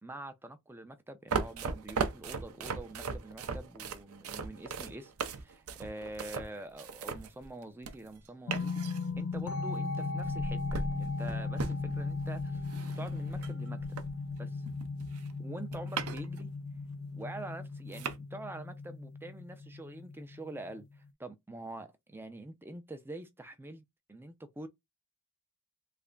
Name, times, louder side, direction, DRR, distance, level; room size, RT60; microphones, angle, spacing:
voice 1, 0.0-8.8 9.2-13.8 14.4-14.6 15.4-16.5 17.1-23.8 24.1-24.7, right 1 dB, 10° right, 0.4 m, -45 dB
sound 1, 1.3-8.2 8.5-9.4 10.2-14.4 14.7-16.4 16.7-16.8 17.5-17.6 17.9-18.2, right 4 dB, 75° right, 0.6 m, -38 dB
sound 2, 8.5-21.1, left 3 dB, 70° left, 0.4 m, -37 dB
3.3 x 2.1 x 3.7 m
head